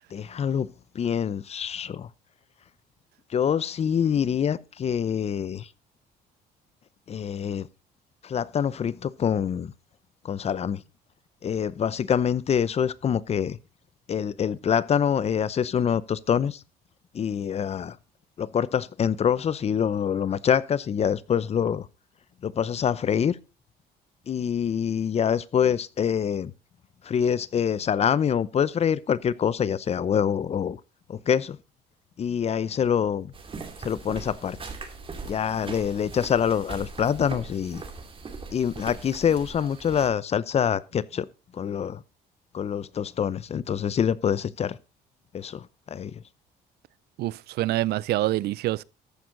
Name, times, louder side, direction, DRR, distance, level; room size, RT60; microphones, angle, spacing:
voice 1, 0.1-0.7 0.9-2.1 3.3-5.7 7.1-7.7 8.2-9.7 10.2-10.8 11.4-13.6 14.1-16.6 17.1-18.0 18.4-21.9 22.4-23.4 24.3-26.5 27.0-30.8 31.1-31.6 32.2-33.3 33.8-34.6 35.3-37.8 38.5-41.3 41.5-42.0 42.5-44.8 45.3-46.2, left 8 dB, 40° left, 0.7 m, -25 dB
sound 1, 33.3-40.1, right 4 dB, 30° right, 2.7 m, -40 dB
voice 2, 47.2-48.8, right 16 dB, 70° right, 0.5 m, -26 dB
14.0 x 9.5 x 3.9 m
cardioid pair, 110°, 17 cm